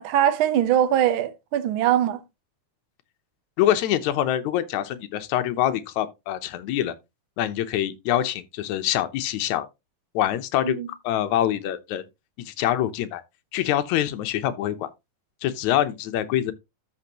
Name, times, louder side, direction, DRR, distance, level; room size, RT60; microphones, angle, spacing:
voice 1, 0.0-2.2 10.6-10.9, right 11 dB, 80° right, 1.1 m, -22 dB
voice 2, 3.6-6.9 7.4-9.7 10.2-10.8 11.0-12.0 12.5-13.2 13.5-14.9 15.4-16.5, left 12 dB, 70° left, 2.1 m, -25 dB
13.0 x 5.4 x 2.9 m
omnidirectional pair, 3.7 m